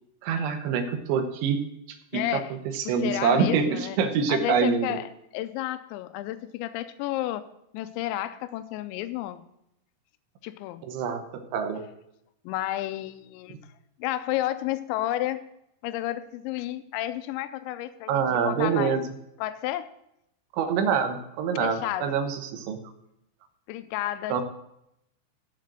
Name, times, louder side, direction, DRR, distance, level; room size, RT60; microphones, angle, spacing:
voice 1, 0.2-2.4 2.7-5.0 10.8-11.8 13.5-13.6 18.1-19.0 20.5-22.8 24.3-24.4, right 6 dB, 85° right, 7 dB, 3.2 m, -26 dB
voice 2, 2.1-2.5 2.8-4.0 4.3-7.5 7.7-9.4 10.4-10.8 12.4-13.6 14.0-15.4 15.8-19.0 19.4-19.9 21.6-22.1 23.7-24.4, left 14 dB, 85° left, 11 dB, 2.9 m, -31 dB
7.6 x 7.4 x 7.5 m, 0.80 s
omnidirectional pair, 5.3 m